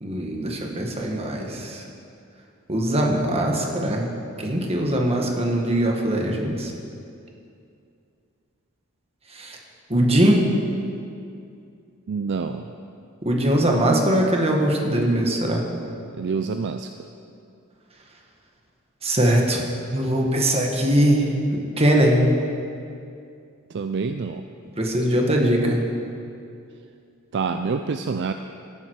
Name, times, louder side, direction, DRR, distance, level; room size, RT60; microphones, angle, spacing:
voice 1, 0.0-1.8 2.7-4.1 4.4-6.7 9.3-9.6 9.9-10.5 13.2-15.6 19.0-19.7 19.9-22.2 24.8-25.9, right 1 dB, 30° right, 0 dB, 1.7 m, -21 dB
voice 2, 12.1-12.6 16.2-16.9 23.7-24.4 27.3-28.3, right 5 dB, 55° right, 8 dB, 0.4 m, -26 dB
16.5 x 11.0 x 4.8 m, 2.5 s
head